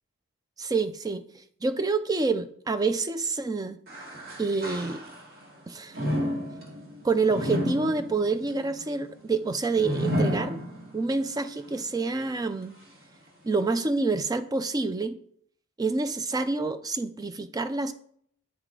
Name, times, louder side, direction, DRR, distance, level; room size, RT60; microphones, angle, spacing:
voice 1, 0.6-1.2 1.6-3.8 4.4-5.0 5.7-6.0 7.0-10.6 10.9-12.8 13.4-15.2 15.8-17.9, right 3 dB, 15° right, 11 dB, 0.3 m, -27 dB
sound 1, 3.9-5.4 5.9-11.2 11.7-11.8 12.6-12.7, equal, 45° right, 1.6 m, -31 dB
8.2 x 4.9 x 3.7 m, 0.64 s
head